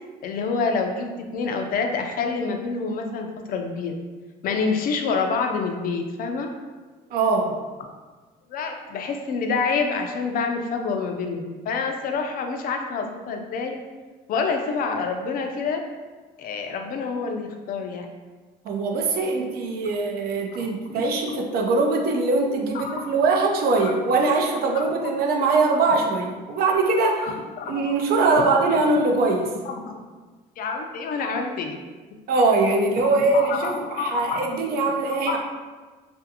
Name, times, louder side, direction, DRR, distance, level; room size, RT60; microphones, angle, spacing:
voice 1, 0.2-4.0 4.4-6.5 8.5-13.8 14.3-15.8 16.4-18.1 20.6-21.1 22.7-23.1 23.8-23.9 24.8-24.9 25.9-26.0 27.2-27.3 27.6-27.8 28.3-28.5 28.7-28.8 29.6-30.0 30.6-31.8 33.0-34.4 35.3-35.4, left 4 dB, 60° left, 4 dB, 0.4 m, -27 dB
voice 2, 7.1-7.6 18.6-27.3 27.7-29.5 32.3-35.4, right 3 dB, 65° right, 2 dB, 0.5 m, -22 dB
2.5 x 2.4 x 2.7 m, 1.3 s
cardioid pair, 110°, 17 cm